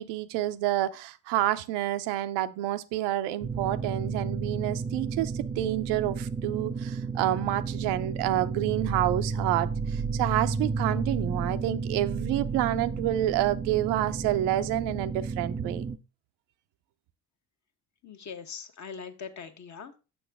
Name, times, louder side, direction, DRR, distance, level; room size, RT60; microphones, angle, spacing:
voice 1, 0.0-15.9, right 14 dB, 90° right, 0.6 m, -28 dB
sound 1, 3.4-16.0, right 5 dB, 15° right, 0.3 m, -32 dB
voice 2, 18.0-20.0, left 6 dB, 45° left, 1.0 m, -41 dB
6.2 x 6.1 x 3.4 m
supercardioid pair, 75°, 40 cm